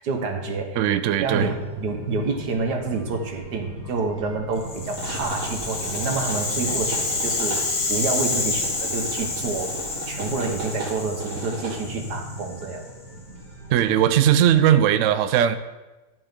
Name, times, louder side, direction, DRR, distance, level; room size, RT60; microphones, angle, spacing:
voice 1, 0.0-0.8 1.2-7.6 7.9-9.8 10.1-12.9, right 4 dB, 65° right, 4 dB, 1.7 m, -28 dB
voice 2, 0.7-1.5 13.7-15.6, right 10 dB, 90° right, 11 dB, 0.6 m, -19 dB
sound 1, 1.1-14.6, right 1 dB, 50° right, 1.9 m, -36 dB
Rattle (instrument), 4.6-12.8, left 3 dB, 85° left, 2.2 m, -29 dB
12.0 x 7.8 x 3.7 m, 1.2 s
omnidirectional pair, 1.9 m